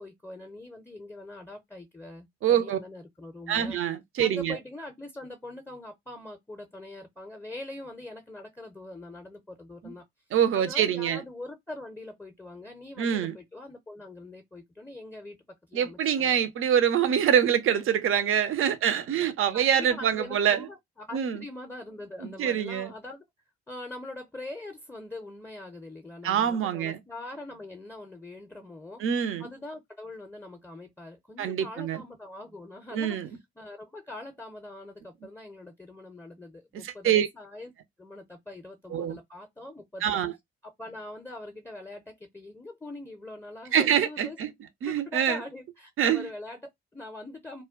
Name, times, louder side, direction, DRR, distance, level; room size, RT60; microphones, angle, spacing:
voice 1, 0.0-3.8 4.2-10.0 10.5-15.4 15.7-16.4 19.5-23.2 23.7-29.0 29.4-37.7 38.0-40.2 40.6-44.4 44.8-47.6, left 2 dB, 5° left, 0.6 m, -43 dB
voice 2, 2.4-2.8 3.5-4.6 9.8-9.9 10.3-11.2 13.0-13.4 15.7-20.7 21.1-21.4 22.2-22.9 26.2-27.0 29.0-29.5 31.4-32.0 32.9-33.3 36.7-37.3 38.9-39.2 40.0-40.3 43.7-44.5 44.8-45.4 46.0-46.3, right 9 dB, 45° right, 0.6 m, -25 dB
2.2 x 2.2 x 3.6 m
figure-of-eight pair, 45°, 30 cm